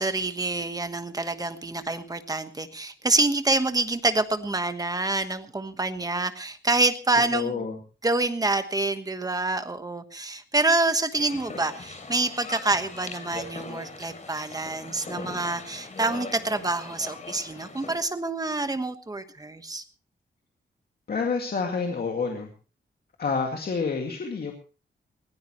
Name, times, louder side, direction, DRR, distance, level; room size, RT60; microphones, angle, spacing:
voice 1, 0.0-7.5 8.0-19.8, right 2 dB, 20° right, 9 dB, 1.2 m, -27 dB
voice 2, 7.3-7.8 21.1-22.5 23.2-24.5, left 5 dB, 55° left, 2 dB, 2.2 m, -28 dB
sound 1, 11.1-18.0, left 3 dB, 40° left, 3.1 m, -40 dB
20.0 x 16.0 x 3.1 m, 0.35 s
wide cardioid pair, 160°, 19 cm